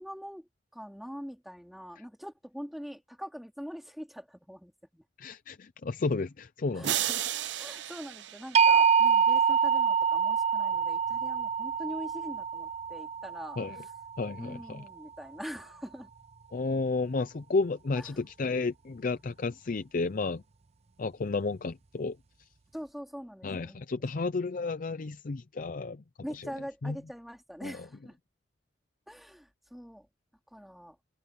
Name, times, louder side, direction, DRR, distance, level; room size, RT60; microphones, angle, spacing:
voice 1, 0.0-5.0 6.7-7.3 7.6-13.9 14.4-16.1 18.0-18.2 22.7-23.8 24.1-24.3 26.2-28.2 29.1-30.1 30.5-31.0, equal, ahead, 3.2 m, -43 dB
voice 2, 5.2-6.9 13.6-13.8 14.2-14.8 16.5-20.4 21.0-22.5 23.4-26.0 26.3-26.4 26.8-27.0 27.6-27.8, left 3 dB, 50° left, 0.5 m, -32 dB
sound 1, 6.8-9.2, right 12 dB, 80° right, 0.7 m, -34 dB
sound 2, 8.5-14.5, right 6 dB, 35° right, 0.5 m, -26 dB
head